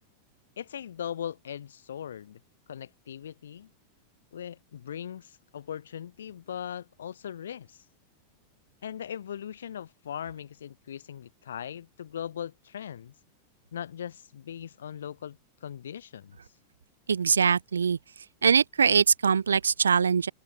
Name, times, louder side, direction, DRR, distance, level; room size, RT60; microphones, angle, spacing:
voice 1, 0.6-2.4 2.7-3.7 4.3-7.9 8.8-13.1 13.7-16.4, left 9 dB, 65° left, 6.9 m, -39 dB
voice 2, 17.1-18.0 18.4-20.3, right 6 dB, 70° right, 3.7 m, -22 dB
open air
figure-of-eight pair, 90°, 0 cm